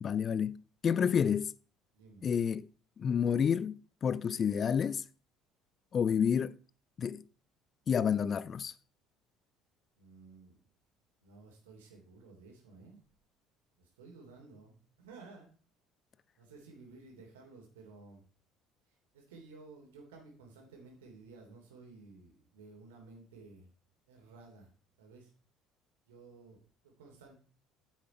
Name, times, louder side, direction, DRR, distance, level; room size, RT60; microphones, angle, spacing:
voice 1, 0.0-1.5 2.2-2.7 3.0-5.0 5.9-6.5 7.0-7.2 7.9-8.7, left 7 dB, 40° left, 0.5 m, -29 dB
voice 2, 1.9-2.3 5.9-6.2 10.0-10.7 11.2-13.0 13.8-15.5 16.4-18.2 19.1-23.7 24.1-24.7 25.0-25.3 26.1-27.3, right 3 dB, 80° right, 3.2 m, -54 dB
9.6 x 7.4 x 4.5 m
hypercardioid pair, 60°, 0 cm